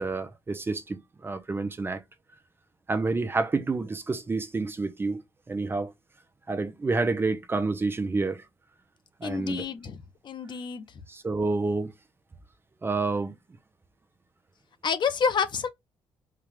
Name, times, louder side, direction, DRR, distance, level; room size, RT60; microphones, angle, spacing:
voice 1, 0.0-2.0 2.9-5.2 5.5-5.9 6.5-8.4 9.2-9.6 11.1-11.9 12.8-13.3, right 3 dB, 20° right, 0.6 m, -28 dB
voice 2, 9.2-10.0 10.2-10.8 14.8-15.7, left 6 dB, 50° left, 0.7 m, -28 dB
4.6 x 2.4 x 3.3 m
cardioid pair, 115°, 10 cm